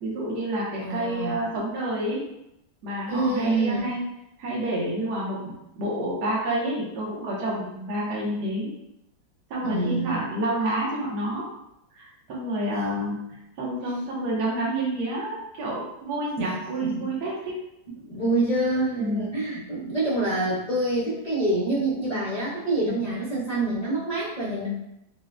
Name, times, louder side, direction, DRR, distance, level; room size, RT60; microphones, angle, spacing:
voice 1, 0.0-2.2 2.8-4.1 4.4-8.7 9.5-11.4 11.9-17.3 19.0-19.3 22.9-23.0, right 1 dB, 70° right, -5 dB, 1.4 m, -29 dB
voice 2, 0.8-1.4 3.1-3.9 9.6-10.2 16.4-16.5 16.8-16.9 17.9-24.7, right 2 dB, 75° left, -8 dB, 0.3 m, -26 dB
4.4 x 2.0 x 2.5 m, 0.82 s
omnidirectional pair, 1.9 m